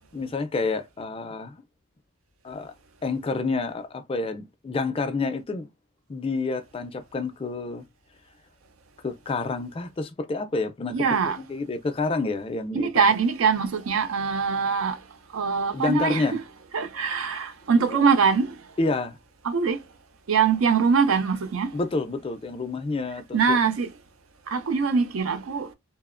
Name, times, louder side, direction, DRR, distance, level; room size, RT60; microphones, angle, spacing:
voice 1, 0.1-1.6 2.4-2.7 3.0-5.7 6.1-7.8 9.0-11.0 11.4-13.1 15.7-16.3 17.9-18.0 18.8-19.2 21.7-23.6, left 3 dB, 25° left, 0.3 m, -29 dB
voice 2, 10.9-11.4 12.7-15.0 15.3-16.4 16.7-18.6 19.4-19.8 20.3-21.7 23.3-23.9 24.5-25.7, right 5 dB, 80° right, 0.5 m, -23 dB
2.8 x 2.0 x 2.4 m
head